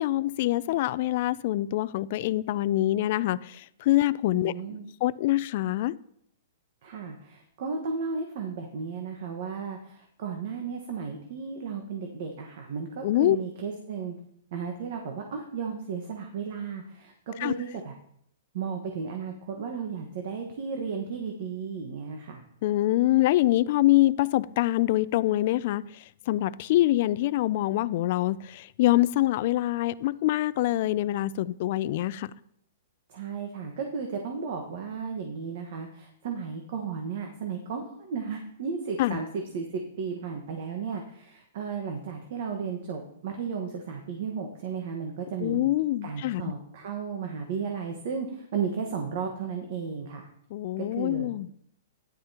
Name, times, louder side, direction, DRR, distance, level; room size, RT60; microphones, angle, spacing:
voice 1, 0.0-3.4 3.9-4.5 5.0-5.9 13.0-13.4 17.4-17.5 22.6-25.8 26.3-32.3 39.0-39.2 45.4-46.4 50.5-51.5, left 15 dB, 45° left, 0.3 m, -25 dB
voice 2, 4.3-4.9 6.8-14.1 14.5-17.9 18.5-22.4 33.1-45.7 46.0-50.3 50.8-51.3, right 5 dB, 50° right, 1.3 m, -34 dB
12.5 x 10.5 x 2.9 m
hypercardioid pair, 160°, 0 cm